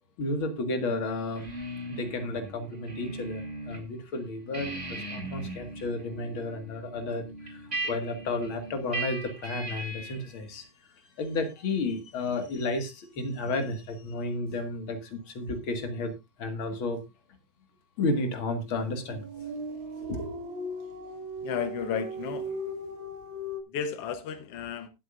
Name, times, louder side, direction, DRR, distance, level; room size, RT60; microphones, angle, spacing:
voice 1, 0.2-1.5 1.9-10.7 11.2-16.1 16.4-17.0 18.0-19.2 20.0-20.4, left 2 dB, 45° left, 2.2 m, -32 dB
sound 1, 1.3-3.8 4.1-10.3, right 2 dB, 20° right, 4.3 m, -38 dB
sound 2, 18.8-23.6, right 1 dB, 40° right, 2.2 m, -38 dB
voice 2, 21.4-22.5 23.7-24.9, left 7 dB, 80° left, 1.3 m, -33 dB
20.5 x 7.8 x 2.5 m
omnidirectional pair, 3.9 m